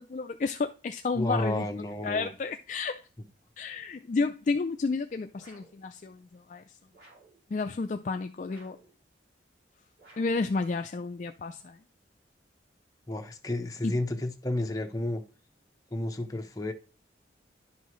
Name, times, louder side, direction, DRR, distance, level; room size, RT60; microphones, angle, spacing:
voice 1, 0.0-1.7 2.0-3.0 3.6-6.6 7.5-8.8 10.2-11.8 13.8-13.9, left 4 dB, 40° left, 0.3 m, -31 dB
voice 2, 1.1-2.3 13.1-15.2 15.9-16.7, left 1 dB, 20° left, 0.9 m, -31 dB
sound 1, 5.4-5.8 6.9-7.4 8.5-8.9 10.0-10.5, right 2 dB, 55° right, 3.1 m, -56 dB
11.0 x 5.6 x 3.1 m
head